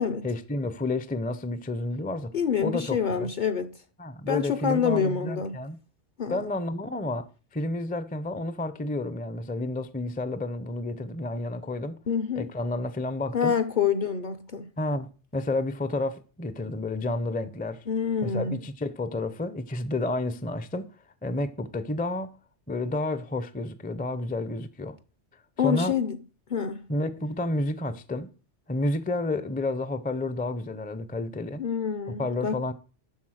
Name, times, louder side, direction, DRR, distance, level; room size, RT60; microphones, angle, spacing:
voice 1, 0.2-2.3 2.6-3.3 4.0-5.8 6.3-7.3 7.5-12.0 12.4-13.5 14.8-17.8 18.2-20.9 21.2-22.3 22.7-25.0 25.6-25.9 26.9-28.3 28.7-31.6 32.1-32.7, left 2 dB, 10° left, 0.4 m, -30 dB
voice 2, 2.3-3.7 4.2-5.5 6.2-6.4 12.1-12.5 13.3-14.7 17.9-18.6 25.6-26.2 26.5-26.8 31.6-32.6, left 7 dB, 50° left, 0.7 m, -27 dB
12.0 x 4.1 x 6.3 m
omnidirectional pair, 1.2 m